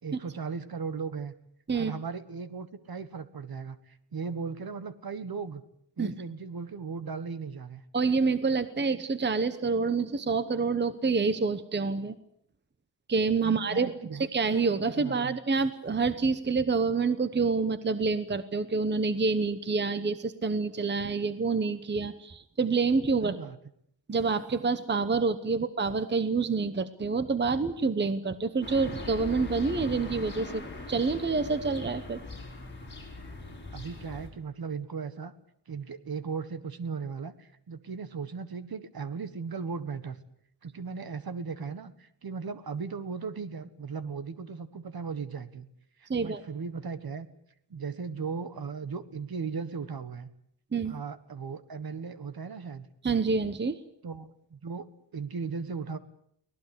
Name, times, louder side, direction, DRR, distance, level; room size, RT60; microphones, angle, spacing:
voice 1, 0.0-1.3 1.7-5.6 6.0-7.8 13.4-14.2 14.9-15.4 23.2-23.6 33.7-35.3 35.7-40.2 40.6-45.6 46.0-47.3 47.7-50.3 50.9-52.9 54.0-54.9 55.1-56.0, right 5 dB, 55° right, 12 dB, 1.5 m, -37 dB
voice 2, 7.9-12.1 13.1-13.9 14.3-23.4 24.1-30.6 30.9-32.2 46.1-46.4 50.7-51.0 53.0-53.8, right 4 dB, 25° right, 12 dB, 0.9 m, -27 dB
sound 1, 28.6-34.3, left 3 dB, 25° left, 6.6 m, -40 dB
24.5 x 18.5 x 8.3 m, 0.69 s
wide cardioid pair, 175°, 43 cm